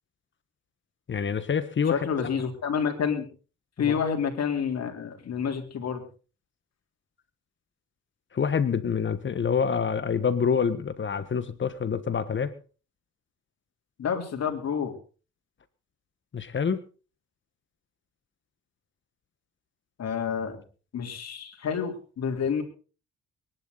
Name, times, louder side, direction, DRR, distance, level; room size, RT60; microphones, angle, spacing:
voice 1, 1.1-2.1 3.8-4.0 8.3-12.5 16.3-16.8, left 6 dB, 40° left, 13 dB, 1.4 m, -26 dB
voice 2, 1.9-3.3 3.8-6.0 14.0-14.9 20.0-20.6 20.9-22.6, left 7 dB, 60° left, 4 dB, 3.7 m, -29 dB
24.0 x 11.0 x 4.0 m, 0.37 s
cardioid pair, 90°, 30 cm